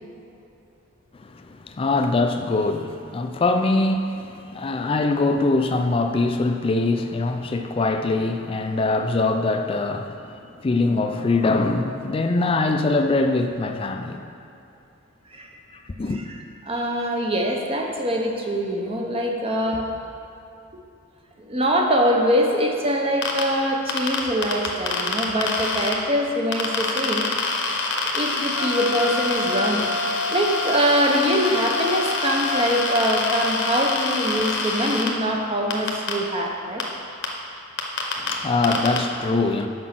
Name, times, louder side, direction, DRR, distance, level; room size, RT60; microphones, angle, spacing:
voice 1, 1.2-14.3 16.0-16.2 38.2-39.7, left 3 dB, 25° left, 0.3 m, -23 dB
voice 2, 16.6-19.9 21.4-27.3 28.1-29.9 30.3-36.9, equal, 25° right, 0.6 m, -23 dB
sound 1, 23.2-23.4 23.9-25.9 26.5-35.1 35.7-36.1 36.8-36.9 37.2-37.3 37.8-38.3 38.6-39.0, left 4 dB, 55° left, 0.8 m, -26 dB
Wind instrument woodwind instrument, 28.5-33.1, left 2 dB, 65° right, 1.7 m, -30 dB
6.1 x 5.2 x 5.9 m
head